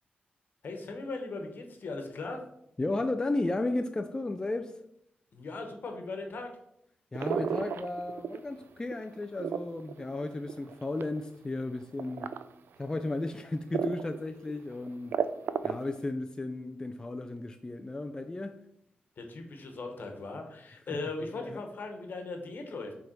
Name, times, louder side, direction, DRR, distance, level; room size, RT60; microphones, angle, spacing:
voice 1, 0.6-2.4 5.3-6.5 19.2-22.9, left 3 dB, 65° left, 1.2 m, -38 dB
voice 2, 2.8-4.8 7.1-12.3 12.8-15.1 15.6-18.6 20.9-21.0 21.3-21.6, left 2 dB, 20° left, 0.4 m, -34 dB
sound 1, 7.2-8.5 8.9-11.2 12.0-12.4 13.0-13.1 13.7-14.2 14.5-14.6 14.9-16.0, right 7 dB, 80° right, 0.3 m, -32 dB
6.4 x 3.5 x 4.6 m
cardioid pair, 95°, 4 cm